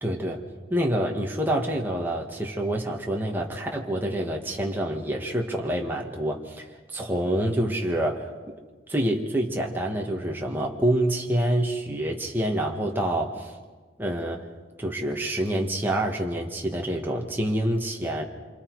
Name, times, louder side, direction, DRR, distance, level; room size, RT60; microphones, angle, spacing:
voice 1, 0.0-0.4 0.7-6.6 6.9-8.3 8.9-13.5 14.0-14.5 14.8-18.2, right 1 dB, 10° right, 0 dB, 1.7 m, -27 dB
27.0 x 26.0 x 4.8 m, 1.4 s
head